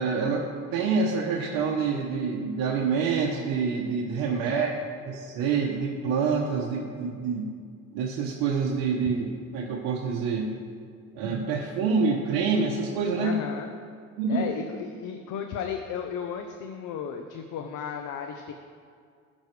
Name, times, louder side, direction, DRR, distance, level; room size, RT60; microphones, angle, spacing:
voice 1, 0.0-4.7 5.1-7.6 7.9-10.5 11.1-13.4 14.2-14.5, right 5 dB, 85° right, -2 dB, 1.0 m, -27 dB
voice 2, 4.3-4.7 13.2-13.7 14.3-18.5, left 7 dB, 65° left, 5 dB, 0.8 m, -34 dB
15.0 x 6.3 x 3.3 m, 2.2 s
cardioid pair, 105°, 33 cm